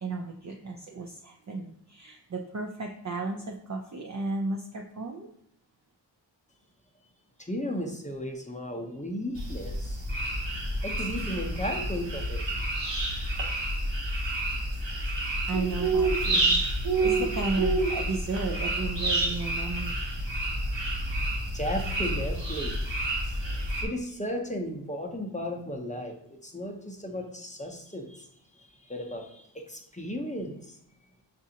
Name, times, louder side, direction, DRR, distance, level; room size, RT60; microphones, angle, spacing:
voice 1, 0.0-5.3 15.5-20.0, right 3 dB, 40° right, 2 dB, 0.5 m, -34 dB
voice 2, 7.4-10.0 10.8-12.4 21.5-22.8 23.3-23.4 23.6-26.1 26.4-28.3 28.8-30.8, equal, 15° left, 1 dB, 0.6 m, -35 dB
sound 1, 9.3-23.8, right 2 dB, 70° right, 1.0 m, -29 dB
6.0 x 2.5 x 2.7 m, 0.69 s
wide cardioid pair, 50°, 45 cm